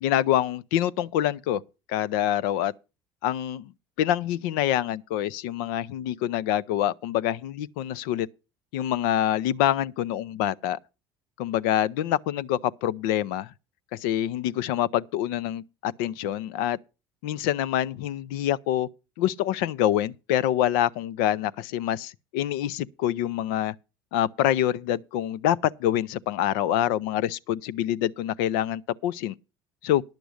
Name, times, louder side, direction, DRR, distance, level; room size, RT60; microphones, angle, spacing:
voice 1, 0.0-1.6 1.9-2.7 3.2-3.7 4.0-8.3 8.7-10.8 11.4-13.5 13.9-16.8 17.2-18.9 19.2-23.7 24.1-29.3 29.8-30.0, left 12 dB, 75° left, 0.5 m, -26 dB
10.5 x 6.9 x 6.3 m
hypercardioid pair, 75°, 12 cm